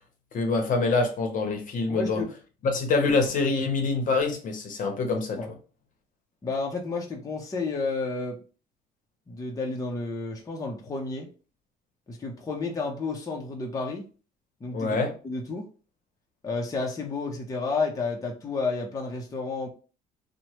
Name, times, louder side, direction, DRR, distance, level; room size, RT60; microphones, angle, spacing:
voice 1, 0.3-2.2 2.6-5.4 14.7-15.1, left 3 dB, 50° left, 0.8 m, -25 dB
voice 2, 1.9-2.3 5.4-5.5 6.4-8.4 9.3-11.3 12.1-14.0 14.6-15.0 15.2-15.7 16.4-19.7, left 3 dB, 20° left, 0.6 m, -31 dB
3.0 x 2.1 x 2.9 m
cardioid pair, 110°, 17 cm